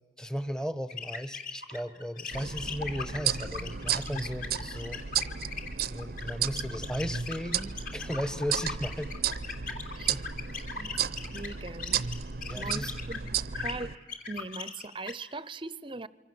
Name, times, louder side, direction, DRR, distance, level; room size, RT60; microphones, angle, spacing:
voice 1, 0.2-5.0 5.8-9.1 10.1-10.3 12.5-12.9, equal, 5° left, 1.0 m, -36 dB
sound 1, 0.9-13.3 13.5-15.1, left 5 dB, 50° left, 3.2 m, -39 dB
sound 2, 2.3-13.9, right 8 dB, 55° right, 0.7 m, -34 dB
voice 2, 11.3-12.0 12.6-13.9 14.3-16.1, right 3 dB, 30° right, 0.7 m, -40 dB
26.5 x 24.5 x 7.8 m
head